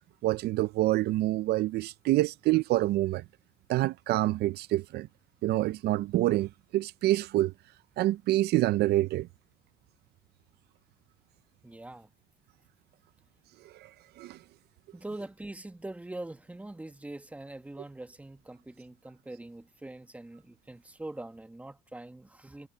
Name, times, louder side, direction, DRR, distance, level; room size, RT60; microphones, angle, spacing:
voice 1, 0.2-3.2 3.7-5.1 5.4-7.5 8.0-9.3 13.6-13.9 14.2-14.4, right 16 dB, 75° right, 0.5 m, -27 dB
voice 2, 11.6-12.1 14.9-22.7, right 2 dB, 10° right, 1.2 m, -43 dB
cardioid pair, 110°, 17 cm